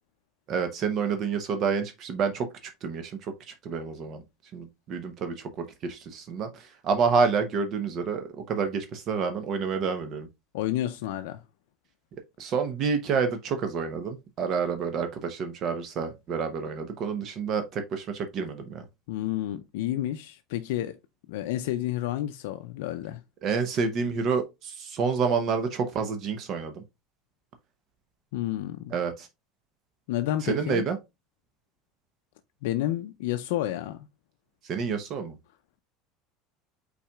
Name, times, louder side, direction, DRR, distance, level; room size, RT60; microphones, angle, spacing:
voice 1, 0.5-2.5 2.8-4.2 4.5-5.5 5.8-10.3 12.4-18.8 23.4-26.8 28.9-29.3 30.4-31.0 34.6-35.3, right 5 dB, 40° right, 0.7 m, -28 dB
voice 2, 10.5-11.4 19.1-21.0 21.3-23.2 28.3-28.9 30.1-30.8 32.6-34.1, left 13 dB, 85° left, 0.4 m, -30 dB
5.7 x 4.0 x 2.3 m
supercardioid pair, 145°, 0 cm